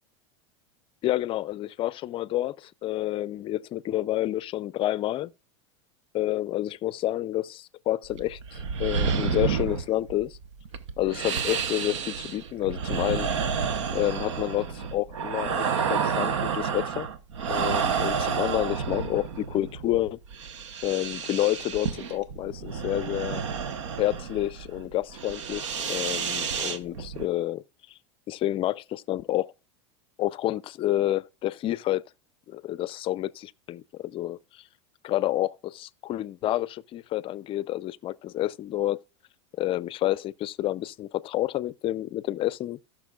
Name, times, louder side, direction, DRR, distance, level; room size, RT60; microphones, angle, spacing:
voice 1, 1.0-5.3 6.1-10.4 11.0-13.3 13.9-17.1 17.5-20.2 20.8-23.4 24.0-27.6 28.3-29.5 30.2-32.0 32.5-34.6 35.0-39.0 39.6-42.8, left 15 dB, 35° left, 0.5 m, -29 dB
sound 1, 8.0-27.3, right 6 dB, 85° right, 1.0 m, -30 dB
17.5 x 6.0 x 2.3 m
hypercardioid pair, 110°, 15 cm